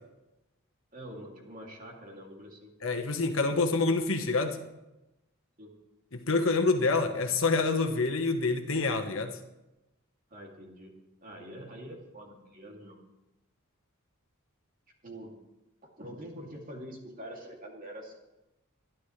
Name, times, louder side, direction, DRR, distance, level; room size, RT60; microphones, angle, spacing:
voice 1, 0.9-2.7 5.6-5.7 10.3-13.0 15.0-15.3 16.0-18.2, equal, 40° right, -1 dB, 2.8 m, -45 dB
voice 2, 2.8-4.6 6.1-9.4, left 3 dB, 65° left, 6 dB, 1.3 m, -27 dB
23.0 x 11.5 x 3.3 m, 0.97 s
head